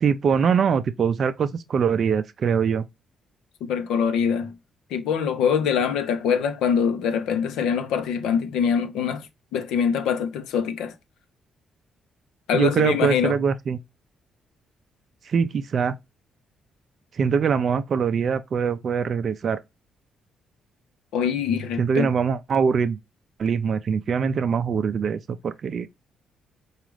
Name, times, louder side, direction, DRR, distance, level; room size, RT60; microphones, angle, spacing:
voice 1, 0.0-2.8 12.5-13.8 15.2-15.9 17.1-19.6 21.8-23.0 23.4-25.9, right 6 dB, 50° right, 0.4 m, -23 dB
voice 2, 3.6-4.5 4.9-9.3 9.5-10.9 12.5-13.4 21.1-22.1, left 7 dB, 90° left, 0.7 m, -24 dB
4.9 x 2.4 x 3.0 m
cardioid pair, 90°, 0 cm